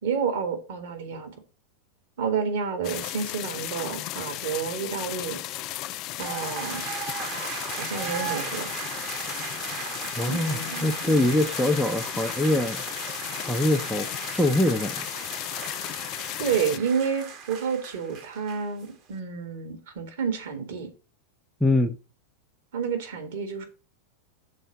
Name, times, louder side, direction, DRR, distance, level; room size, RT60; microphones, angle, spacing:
voice 1, 0.0-1.3 2.2-5.4 6.2-6.9 7.8-8.7 10.3-11.2 16.4-20.9 22.7-23.6, right 6 dB, 55° right, 2.0 m, -30 dB
sound 1, 2.8-16.8, left 15 dB, 40° left, 0.3 m, -35 dB
sound 2, 6.2-18.9, right 6 dB, 35° right, 1.3 m, -37 dB
voice 2, 10.2-12.8 13.4-15.0 21.6-22.0, left 1 dB, ahead, 0.6 m, -24 dB
6.7 x 4.2 x 6.4 m
figure-of-eight pair, 90°, 0 cm